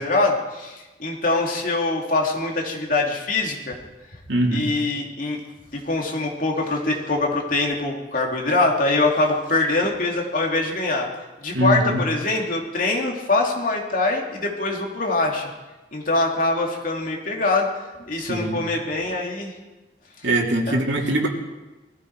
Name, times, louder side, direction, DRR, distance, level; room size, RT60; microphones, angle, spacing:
voice 1, 0.0-3.8 4.5-5.4 5.7-11.1 11.4-15.5 15.9-17.7 18.1-19.5 20.7-20.8, left 2 dB, 50° left, 0 dB, 2.7 m, -23 dB
voice 2, 4.3-4.7 11.5-12.0 18.3-18.6 20.2-21.3, right 1 dB, 90° right, -1 dB, 2.9 m, -22 dB
20.0 x 14.5 x 4.7 m, 1.1 s
head